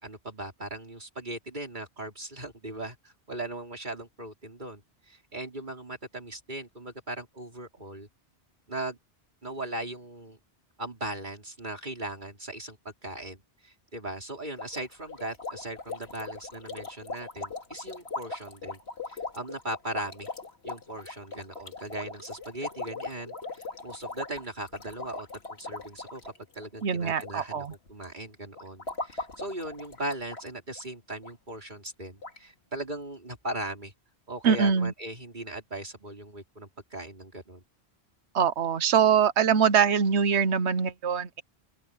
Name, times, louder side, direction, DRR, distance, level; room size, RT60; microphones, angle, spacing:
voice 1, 0.0-8.1 8.7-9.0 9.4-10.4 10.8-12.8 13.0-18.8 19.1-20.3 20.6-33.9 34.3-37.6, right 1 dB, 45° right, 4.4 m, -38 dB
sound 1, 14.6-27.3 27.6-28.0 28.6-30.5 30.8-30.9 31.2-31.3 31.9-32.0 32.2-32.4, left 3 dB, 70° left, 3.0 m, -40 dB
voice 2, 26.8-27.7 34.4-34.9 38.3-41.4, right 7 dB, 80° right, 1.2 m, -23 dB
open air
omnidirectional pair, 1.1 m